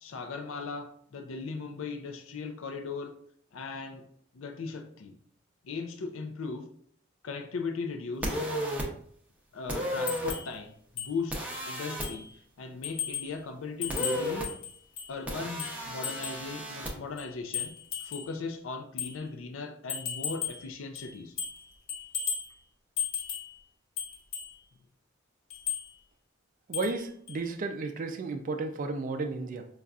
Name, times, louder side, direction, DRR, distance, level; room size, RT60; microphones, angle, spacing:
voice 1, 0.0-3.1 3.5-4.0 4.3-5.1 5.6-6.7 7.2-8.4 9.5-11.4 11.7-12.3 12.6-14.5 15.1-17.7 18.0-21.4, left 4 dB, 70° left, 6 dB, 0.5 m, -38 dB
sound 1, 8.2-8.9 9.7-10.3 11.3-12.1 13.9-14.5 15.3-16.9, equal, 5° right, 0.6 m, -33 dB
sound 2, 10.1-10.5 11.0-11.1 11.5-11.6 12.0-12.3 12.8-13.3 13.8-15.1 15.6-16.5 17.2-18.3 19.0-19.2 19.9-20.7 20.9-21.6 21.9-22.5 23.0-23.5 24.0-24.5 25.5-25.9 26.7-27.0 27.3-27.4, left 7 dB, 85° left, 1.0 m, -35 dB
voice 2, 26.7-29.7, right 3 dB, 40° right, 6 dB, 0.3 m, -33 dB
5.2 x 2.3 x 2.3 m, 0.62 s
head